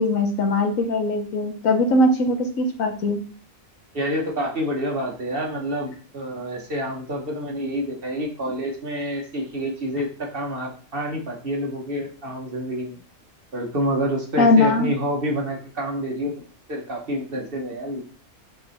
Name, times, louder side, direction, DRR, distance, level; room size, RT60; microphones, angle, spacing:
voice 1, 0.0-3.2 14.4-14.9, left 2 dB, 70° left, 4 dB, 1.4 m, -20 dB
voice 2, 3.9-13.0 13.5-16.3 16.7-18.0, equal, 45° right, 0 dB, 1.3 m, -28 dB
7.7 x 3.1 x 4.1 m, 0.42 s
omnidirectional pair, 1.5 m